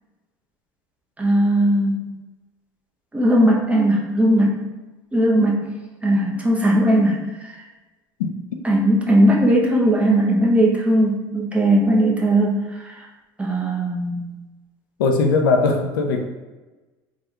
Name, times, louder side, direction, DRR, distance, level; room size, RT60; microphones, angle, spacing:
voice 1, 1.2-2.1 3.1-4.6 5.1-5.7 6.0-7.3 8.6-12.6 12.9-13.0 13.4-14.3, right 1 dB, 10° right, -2 dB, 0.7 m, -18 dB
voice 2, 15.0-16.3, left 3 dB, 90° left, 4 dB, 0.4 m, -19 dB
3.5 x 2.3 x 2.9 m, 1.2 s
supercardioid pair, 85°, 11 cm